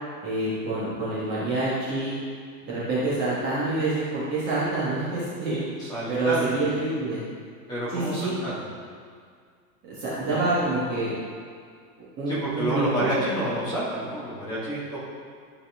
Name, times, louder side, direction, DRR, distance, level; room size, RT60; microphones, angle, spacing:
voice 1, 0.2-2.1 2.6-5.7 6.1-7.2 7.9-8.3 9.8-11.1 12.2-13.1, right 2 dB, 20° right, -9 dB, 1.3 m, -27 dB
voice 2, 5.8-6.5 7.7-8.6 10.3-10.4 12.3-15.0, right 1 dB, 10° left, -10 dB, 1.5 m, -29 dB
11.5 x 4.1 x 3.5 m, 2.1 s
supercardioid pair, 165°, 48 cm